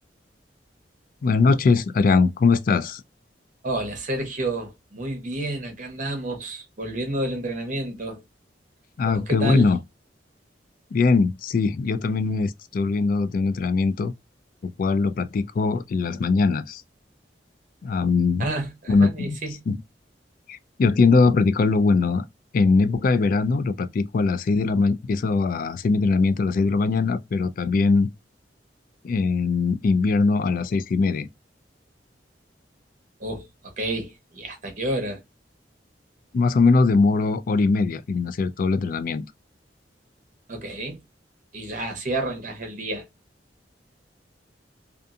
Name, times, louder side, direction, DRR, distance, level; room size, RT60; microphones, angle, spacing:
voice 1, 1.2-3.0 9.0-9.8 10.9-14.1 14.6-16.8 17.8-18.5 18.9-19.4 19.7-19.8 20.5-22.2 22.5-28.1 29.0-31.3 36.3-39.2, left 4 dB, 50° left, 0.3 m, -21 dB
voice 2, 3.6-8.2 9.0-9.7 18.4-19.6 33.2-35.2 40.5-41.0 41.5-43.1, right 1 dB, 50° right, 1.0 m, -30 dB
2.6 x 2.4 x 2.3 m
head